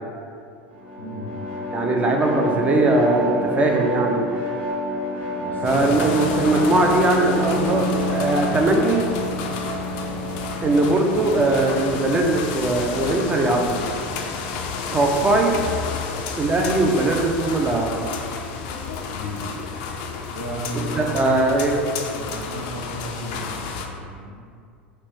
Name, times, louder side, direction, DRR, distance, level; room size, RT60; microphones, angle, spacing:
sound 1, 0.7-16.1, left 1 dB, 40° right, 0.9 m, -29 dB
voice 1, 1.0-1.3 5.4-5.9 19.1-19.4 20.3-21.4 22.1-24.5, right 1 dB, 85° left, -3 dB, 0.7 m, -34 dB
voice 2, 1.7-4.3 5.6-9.0 10.6-13.8 14.9-15.5 16.4-18.1 21.0-21.7, right 2 dB, 20° right, 2 dB, 0.4 m, -20 dB
sound 2, 5.6-23.9, left 5 dB, 50° left, 0.4 m, -31 dB
4.2 x 2.6 x 3.1 m, 2.3 s
figure-of-eight pair, 80°, 6 cm